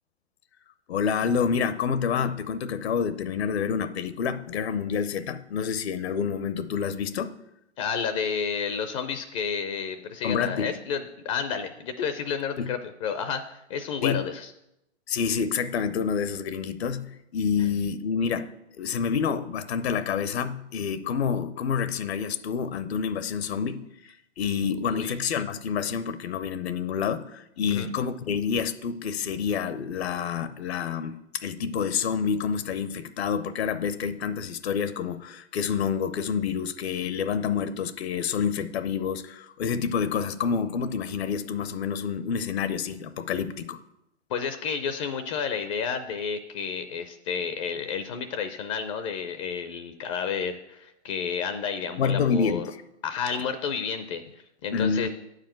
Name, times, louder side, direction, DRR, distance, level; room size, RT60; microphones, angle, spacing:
voice 1, 0.9-7.4 10.2-10.7 12.6-12.7 14.0-14.2 15.1-43.8 52.0-52.8 54.7-55.1, left 6 dB, 60° left, 13 dB, 0.7 m, -28 dB
voice 2, 7.8-14.5 17.6-17.7 24.8-25.1 27.7-27.9 44.3-52.7 53.0-54.2 54.6-55.1, left 6 dB, 30° left, 9 dB, 0.5 m, -31 dB
8.5 x 4.9 x 7.5 m, 0.84 s
hypercardioid pair, 130°, 36 cm